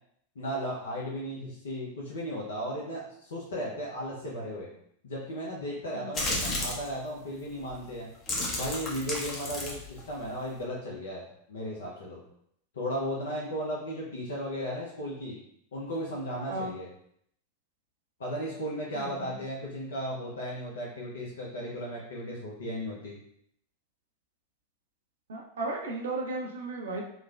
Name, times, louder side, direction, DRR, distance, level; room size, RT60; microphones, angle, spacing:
voice 1, 0.4-4.7 5.0-8.1 8.5-11.2 11.5-12.2 12.7-15.4 15.7-16.9 18.2-23.2, equal, 65° left, -4 dB, 0.6 m, -35 dB
sound 1, 6.1-6.9 7.6-7.8 8.1-10.6, left 2 dB, 25° left, 0.6 m, -33 dB
voice 2, 18.9-19.4 25.3-27.0, right 2 dB, 65° right, 0 dB, 0.5 m, -35 dB
3.1 x 2.1 x 2.3 m, 0.70 s
figure-of-eight pair, 90°, 0 cm